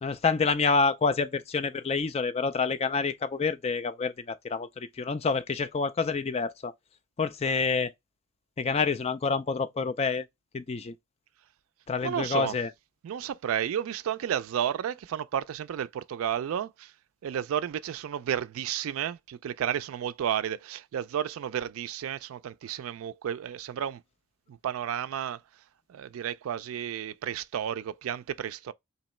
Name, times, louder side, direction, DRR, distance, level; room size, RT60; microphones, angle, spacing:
voice 1, 0.0-6.7 7.2-7.9 8.6-10.2 10.5-10.9 11.9-12.7, left 4 dB, 30° left, 0.3 m, -28 dB
voice 2, 12.0-12.6 13.0-16.9 17.2-24.0 24.5-25.4 25.9-28.7, right 9 dB, 80° right, 0.3 m, -32 dB
3.0 x 2.8 x 4.2 m
head